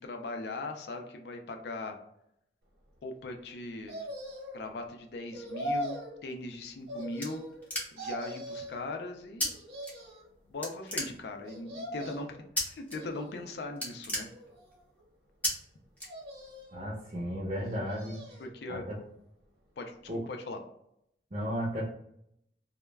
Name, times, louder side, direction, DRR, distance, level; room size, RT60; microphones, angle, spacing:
voice 1, 0.0-2.0 3.0-4.0 4.5-7.4 7.9-9.5 10.5-12.4 12.6-14.3 18.4-18.9 19.8-20.6, left 2 dB, 70° left, 4 dB, 0.4 m, -39 dB
sound 1, 3.9-4.7 5.3-6.1 6.9-7.7 8.0-8.8 9.4-10.3 11.4-12.4 12.9-13.6 14.2-15.0 16.0-16.9 17.6-18.5 18.9-19.0, equal, 75° right, 0.9 m, -40 dB
sound 2, 6.5-8.2 9.4-9.5 9.8-10.3 10.6-11.6 12.6-13.0 13.3-13.4 13.7-14.9 15.4-15.5 16.0-16.6, equal, 10° left, 0.5 m, -34 dB
voice 2, 16.7-18.2 18.7-19.0 20.1-20.2 21.3-21.8, equal, 40° right, -4 dB, 0.5 m, -34 dB
2.2 x 2.1 x 3.2 m, 0.74 s
head